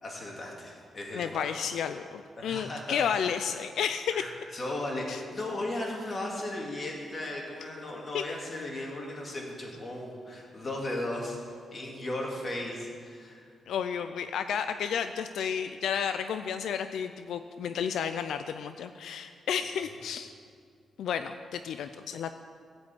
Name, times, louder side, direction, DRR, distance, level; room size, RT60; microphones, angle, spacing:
voice 1, 0.0-1.4 2.4-3.4 4.1-13.4, left 1 dB, 35° left, -1 dB, 2.3 m, -36 dB
voice 2, 1.1-4.2 5.1-5.2 8.1-8.2 13.7-20.3 21.0-22.4, left 8 dB, 85° left, 9 dB, 0.4 m, -32 dB
15.0 x 5.4 x 8.3 m, 2.1 s
wide cardioid pair, 140°, 0 cm